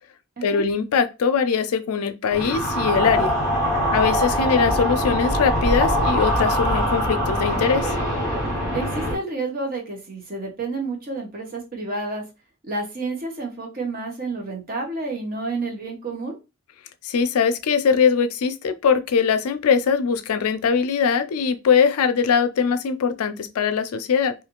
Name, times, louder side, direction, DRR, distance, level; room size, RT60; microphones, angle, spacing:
voice 1, 0.4-3.3 3.9-7.9 17.0-24.3, left 6 dB, 85° left, 0.4 m, -21 dB
sound 1, 2.3-9.2, equal, ahead, 1.3 m, -23 dB
voice 2, 8.7-12.2 12.6-16.4, right 3 dB, 40° right, 0.8 m, -30 dB
2.6 x 2.5 x 2.9 m
head